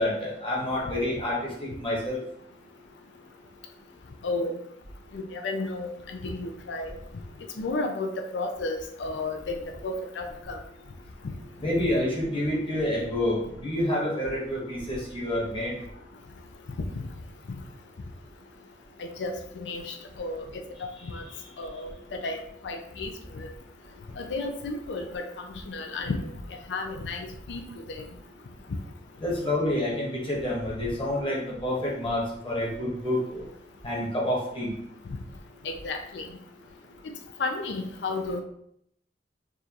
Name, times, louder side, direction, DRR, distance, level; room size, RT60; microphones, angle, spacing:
voice 1, 0.0-2.2 11.6-15.8 21.0-21.1 29.2-33.4 33.8-34.7, left 1 dB, 30° left, -4 dB, 1.2 m, -28 dB
voice 2, 4.2-4.6 5.1-6.9 7.6-10.6 19.0-20.6 21.0-21.2 21.6-23.5 24.2-26.3 26.7-27.6 27.9-28.0 35.6-36.3 37.4-38.4, left 2 dB, 70° left, 4 dB, 0.5 m, -33 dB
4.8 x 2.5 x 2.9 m, 0.72 s
head